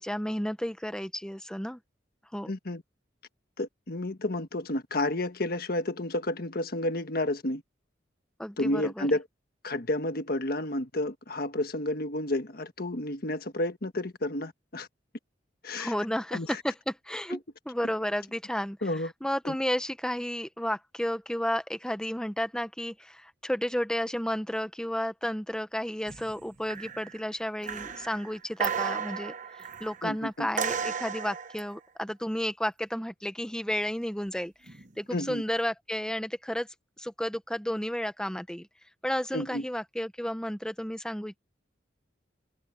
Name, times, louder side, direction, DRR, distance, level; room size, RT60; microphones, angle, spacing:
voice 1, 0.0-1.8 2.3-2.5 8.4-9.1 15.7-17.4 17.7-18.8 19.2-34.5 35.0-36.7 37.0-38.7 39.0-41.4, equal, 5° left, 1.1 m, -32 dB
voice 2, 2.5-2.8 3.6-7.6 8.6-9.2 9.6-14.9 15.6-15.9 16.3-16.6 17.3-17.4 18.8-19.1 19.4-19.6 30.0-30.5 35.1-35.4 39.3-39.6, left 1 dB, 55° left, 1.5 m, -31 dB
sound 1, 26.1-26.4 26.7-27.2 27.6-30.1 30.6-31.7 34.7-34.9, right 6 dB, 45° right, 1.0 m, -34 dB
head